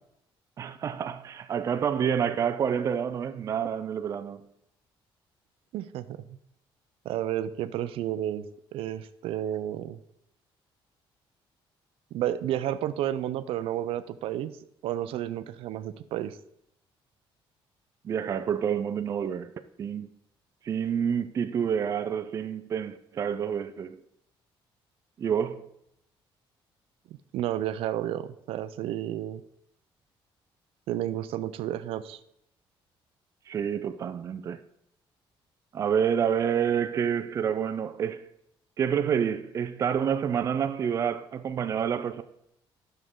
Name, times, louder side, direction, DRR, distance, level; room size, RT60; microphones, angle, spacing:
voice 1, 0.6-4.5 18.0-19.5 19.8-20.1 20.6-24.0 25.2-25.7 33.5-34.6 35.7-38.3 38.8-42.2, right 8 dB, 35° right, 0.4 m, -28 dB
voice 2, 5.7-6.2 7.0-8.5 8.7-10.0 12.1-14.6 14.8-16.4 27.3-29.4 30.9-32.2, right 12 dB, 85° right, 0.5 m, -31 dB
10.0 x 6.4 x 3.7 m
cardioid pair, 170°, 9 cm